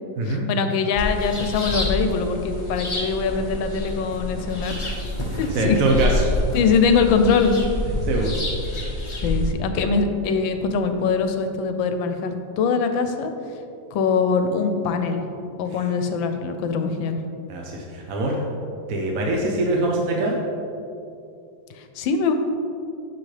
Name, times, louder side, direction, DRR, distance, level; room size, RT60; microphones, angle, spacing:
voice 1, 0.2-4.9 5.4-5.8 6.5-7.6 9.2-13.3 13.9-15.3 15.6-17.2 21.8-22.3, left 5 dB, 80° left, 7 dB, 1.4 m, -22 dB
sound 1, 1.0-9.5, left 1 dB, 35° left, 0.4 m, -27 dB
voice 2, 5.3-6.2 8.1-8.4 17.5-18.4 18.9-20.4, right 2 dB, 55° right, -1 dB, 1.0 m, -23 dB
9.7 x 6.6 x 3.3 m, 2.6 s
omnidirectional pair, 2.1 m